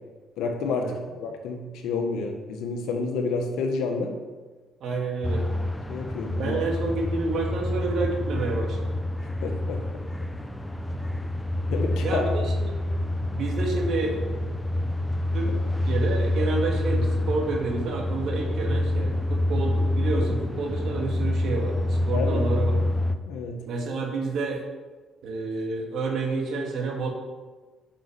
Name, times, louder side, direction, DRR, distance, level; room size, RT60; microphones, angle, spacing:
voice 1, 0.4-4.1 4.9-5.0 5.9-6.6 9.4-9.8 11.7-12.2 22.1-22.5 23.3-23.6, left 4 dB, 80° left, 3 dB, 1.6 m, -29 dB
voice 2, 4.8-5.5 6.4-8.9 12.0-12.7 13.3-14.3 15.3-15.5 15.8-22.7 23.7-24.6 25.2-27.1, right 3 dB, 70° right, 0 dB, 2.4 m, -29 dB
sound 1, 5.2-23.1, left 1 dB, 10° left, 1.0 m, -27 dB
9.1 x 6.8 x 6.8 m, 1.3 s
supercardioid pair, 60°, 0 cm